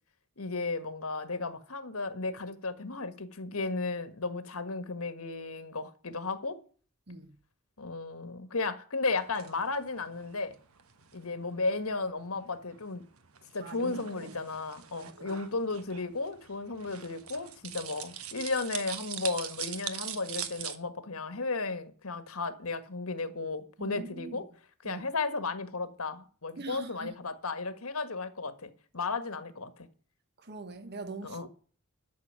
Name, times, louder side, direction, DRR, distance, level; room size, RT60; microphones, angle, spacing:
voice 1, 0.4-6.6 7.8-10.5 11.1-13.0 13.5-24.4 24.8-29.9 31.2-31.5, left 3 dB, 80° left, 1.7 m, -34 dB
sound 1, 9.1-20.8, right 9 dB, 80° right, 1.4 m, -43 dB
voice 2, 13.6-14.4 15.0-15.4 23.8-24.4 24.8-25.1 26.6-27.1 30.4-31.5, right 2 dB, 50° right, 1.1 m, -43 dB
12.5 x 6.4 x 8.8 m
head